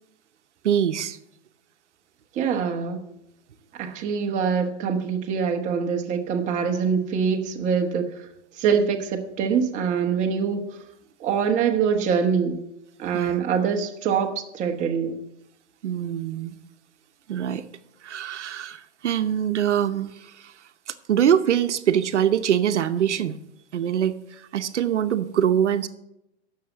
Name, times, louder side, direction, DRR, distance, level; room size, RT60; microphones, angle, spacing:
voice 1, 0.6-1.2 13.1-13.3 15.8-16.6 17.3-17.6 18.0-20.5 20.9-23.4 23.7-25.9, right 9 dB, 85° right, 10 dB, 0.9 m, -24 dB
voice 2, 2.3-3.0 3.7-8.3 8.6-10.8 11.2-12.6 13.0-15.2, right 6 dB, 20° right, 2 dB, 1.2 m, -24 dB
9.3 x 6.7 x 7.9 m, 0.85 s
hypercardioid pair, 145°, 34 cm